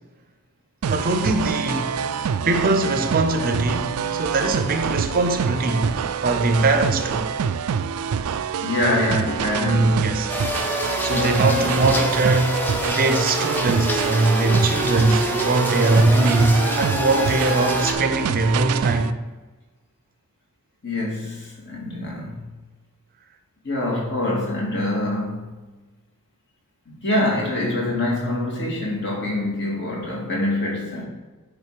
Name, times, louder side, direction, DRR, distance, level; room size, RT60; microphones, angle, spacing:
voice 1, 0.8-2.1 2.4-7.3 9.6-10.3 11.0-19.2, right 2 dB, 40° right, 0.6 m, -21 dB
sound 1, 0.8-19.1, right 7 dB, 85° right, 0.4 m, -26 dB
voice 2, 8.6-9.9 11.1-11.9 20.8-22.4 23.6-25.5 26.9-31.0, left 1 dB, 55° left, 2.2 m, -25 dB
sound 2, 10.3-17.9, equal, 10° left, 0.6 m, -27 dB
10.0 x 3.7 x 4.9 m
head